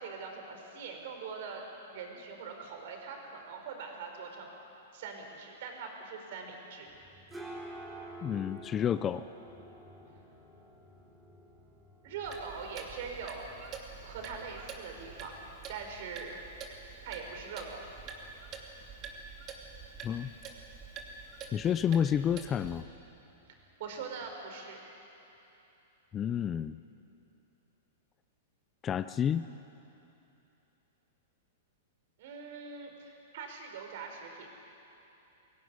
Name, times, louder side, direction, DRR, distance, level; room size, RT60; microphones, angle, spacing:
voice 1, 0.0-1.6 1.9-4.6 4.9-6.9 12.0-13.5 14.0-15.3 15.7-16.4 17.0-17.8 23.8-24.8 32.2-34.5, right 5 dB, 60° right, 3 dB, 4.8 m, -42 dB
sound 1, 6.9-24.4, right 1 dB, 10° right, 3.6 m, -53 dB
voice 2, 8.2-9.3 20.0-20.3 21.5-22.8 26.1-26.8 28.8-29.5, left 9 dB, 20° left, 13 dB, 0.5 m, -30 dB
Clock, 12.2-22.8, right 5 dB, 30° right, 2.8 m, -47 dB
22.5 x 16.5 x 9.7 m, 3.0 s
hypercardioid pair, 140°, 0 cm